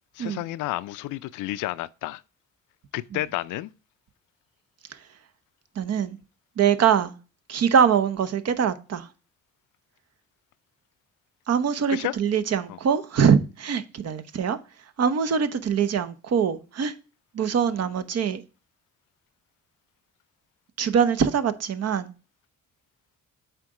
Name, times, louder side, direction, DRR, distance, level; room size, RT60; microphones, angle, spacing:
voice 1, 0.1-2.2 2.9-3.7 11.9-12.2 12.7-12.8, left 16 dB, 85° left, 0.5 m, -31 dB
voice 2, 5.8-6.2 6.6-7.1 7.5-9.1 11.5-14.6 15.0-16.9 17.3-18.4 20.8-22.1, right 7 dB, 55° right, 0.9 m, -23 dB
8.1 x 3.9 x 4.8 m
cardioid pair, 90°, 30 cm